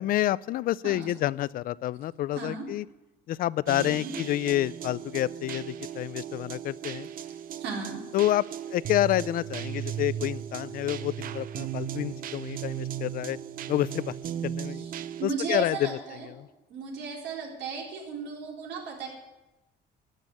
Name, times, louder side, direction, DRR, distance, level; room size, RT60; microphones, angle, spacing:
voice 1, 0.0-2.9 3.3-7.1 8.1-8.4 8.7-13.4 13.7-14.1 14.4-14.9 15.2-16.0 16.4-16.5, left 14 dB, 55° left, 21 dB, 0.4 m, -28 dB
voice 2, 0.8-1.2 2.4-2.7 3.8-4.1 7.6-8.0 14.7-16.3 16.7-19.1, right 5 dB, 80° right, -1 dB, 4.0 m, -35 dB
sound 1, 3.7-15.2, right 10 dB, 55° right, 0.6 m, -36 dB
12.0 x 9.0 x 9.7 m, 1.0 s
cardioid pair, 155°, 18 cm